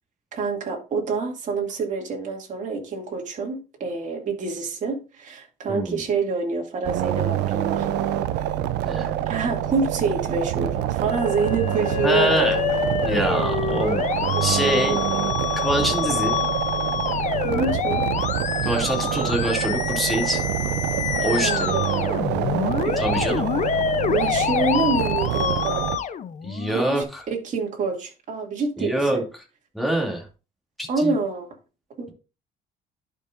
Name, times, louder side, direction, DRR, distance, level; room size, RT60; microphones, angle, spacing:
voice 1, 0.3-7.9 9.3-12.8 14.4-14.6 17.4-18.1 21.4-22.2 22.8-23.0 24.1-25.9 26.7-29.3 30.9-31.5 32.0-32.1, right 4 dB, 45° right, 2.4 m, -27 dB
sound 1, 6.8-26.0, right 11 dB, 90° right, 0.6 m, -26 dB
voice 2, 8.8-9.2 12.0-12.6 13.0-14.0 14.4-15.0 15.6-16.4 18.6-20.4 21.2-21.7 23.0-23.5 26.4-27.2 28.8-29.2 29.7-30.3 30.8-31.1, right 1 dB, ahead, 2.6 m, -25 dB
Musical instrument, 11.1-27.0, left 8 dB, 45° left, 0.7 m, -27 dB
11.5 x 5.3 x 2.6 m
cardioid pair, 110°, 17 cm